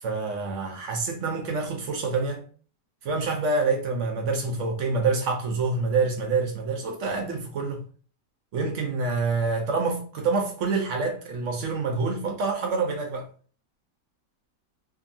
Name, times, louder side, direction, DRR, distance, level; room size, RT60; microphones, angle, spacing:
voice 1, 0.0-2.4 3.0-7.8 8.5-13.3, right 4 dB, 65° right, 0.7 m, -27 dB
2.7 x 2.6 x 2.6 m
omnidirectional pair, 1.7 m